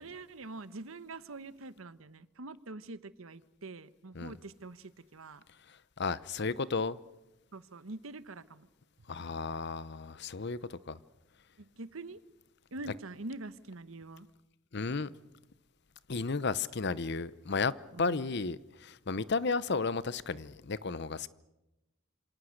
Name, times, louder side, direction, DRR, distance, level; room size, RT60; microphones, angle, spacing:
voice 1, 0.0-5.4 7.5-8.7 11.6-12.2 12.7-14.3 17.9-18.3, right 2 dB, 90° right, 1.1 m, -45 dB
voice 2, 5.7-7.0 9.1-11.0 14.7-15.1 16.1-17.7 18.0-21.3, left 4 dB, 55° left, 0.8 m, -33 dB
27.5 x 25.5 x 6.6 m
head